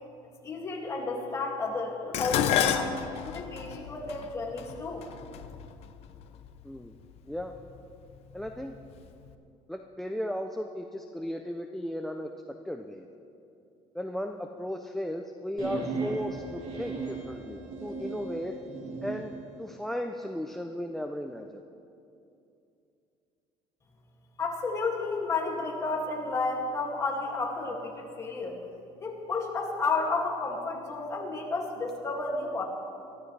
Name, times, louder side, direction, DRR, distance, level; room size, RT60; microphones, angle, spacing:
voice 1, 0.4-2.9 3.2-5.0 24.4-28.6 29.0-32.6, left 3 dB, 25° left, -1 dB, 2.3 m, -31 dB
Dishes pots and pans, 2.1-6.5 7.4-7.8 8.2-9.0 9.3-9.4, left 9 dB, 60° left, 0.8 m, -31 dB
voice 2, 8.3-8.8 9.7-12.3 12.7-13.1 13.9-18.6 19.0-19.3 19.6-21.6, equal, 5° left, 5 dB, 0.5 m, -35 dB
sound 1, 15.6-19.3, right 3 dB, 50° right, 2.7 m, -36 dB
23.5 x 14.0 x 3.3 m, 2.7 s
cardioid pair, 155°, 12 cm